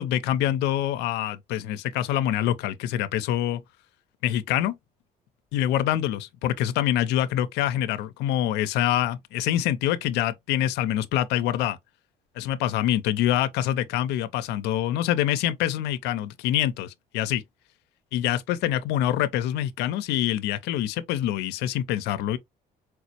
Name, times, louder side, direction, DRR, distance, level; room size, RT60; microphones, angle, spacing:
voice 1, 0.0-3.6 4.2-4.8 5.5-11.8 12.4-17.4 18.1-22.4, left 12 dB, 90° left, 0.4 m, -25 dB
4.5 x 2.0 x 2.7 m
cardioid pair, 110°, 17 cm